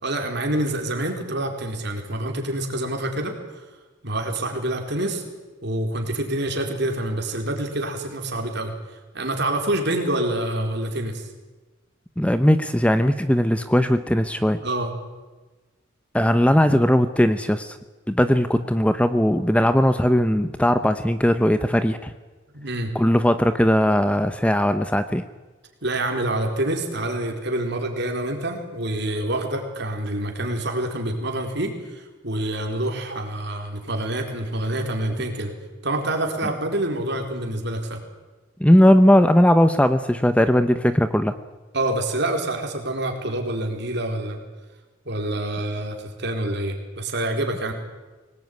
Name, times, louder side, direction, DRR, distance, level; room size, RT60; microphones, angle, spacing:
voice 1, 0.0-3.6 4.0-5.2 5.6-8.7 9.1-11.3 14.6-14.9 22.5-22.9 25.8-35.5 35.8-38.0 41.7-44.4 45.0-47.7, right 1 dB, 55° right, 3 dB, 4.4 m, -27 dB
voice 2, 12.2-14.6 16.1-17.8 18.1-22.1 22.9-25.2 38.6-41.3, equal, 5° left, 10 dB, 0.8 m, -18 dB
24.0 x 19.5 x 9.5 m, 1.2 s
head